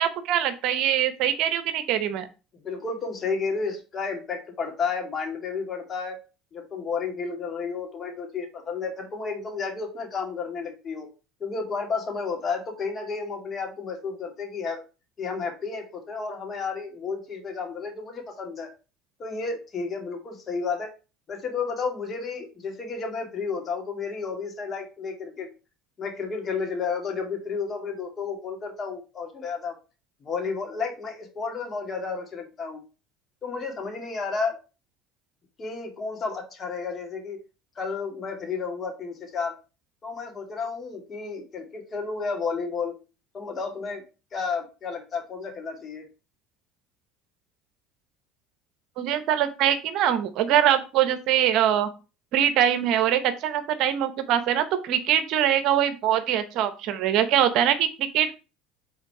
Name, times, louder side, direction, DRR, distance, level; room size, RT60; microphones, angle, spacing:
voice 1, 0.0-2.3 49.0-51.9 52.3-58.4, right 10 dB, 65° right, 11 dB, 0.8 m, -23 dB
voice 2, 2.6-6.2 6.5-11.1 11.4-14.8 15.2-18.7 19.2-20.9 21.3-25.5 26.0-29.8 30.2-32.8 33.4-34.6 35.6-37.4 37.8-39.6 40.0-43.0 43.3-44.0 44.3-46.1, left 5 dB, 40° left, 3 dB, 2.2 m, -32 dB
5.6 x 4.0 x 4.8 m, 0.31 s
supercardioid pair, 90°, 0 cm